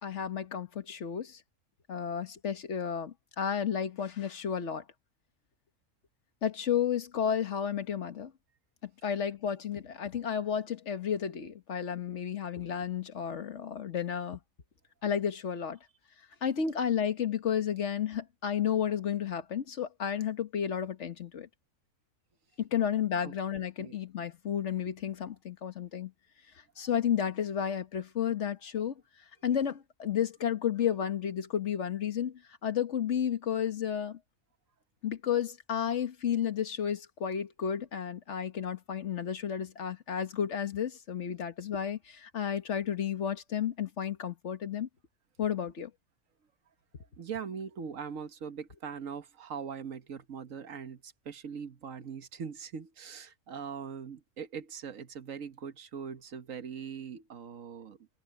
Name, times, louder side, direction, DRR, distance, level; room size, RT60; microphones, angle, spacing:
voice 1, 0.0-1.4 1.9-4.8 6.4-8.3 9.0-14.4 15.0-15.8 16.4-21.5 22.6-26.1 26.8-28.9 29.4-32.3 32.6-34.2 35.0-44.9 45.4-45.9, left 8 dB, 60° left, 1.6 m, -32 dB
voice 2, 47.2-58.1, right 7 dB, 80° right, 1.6 m, -41 dB
omnidirectional pair, 1.4 m